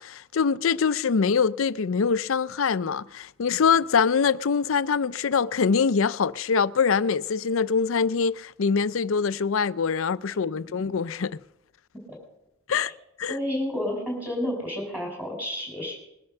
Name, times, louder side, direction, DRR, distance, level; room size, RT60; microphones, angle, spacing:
voice 1, 0.0-11.4 12.7-12.9 13.2-13.4, left 6 dB, 70° left, 0.5 m, -24 dB
voice 2, 13.3-16.0, left 1 dB, 5° right, 5.0 m, -30 dB
20.5 x 10.5 x 6.7 m
head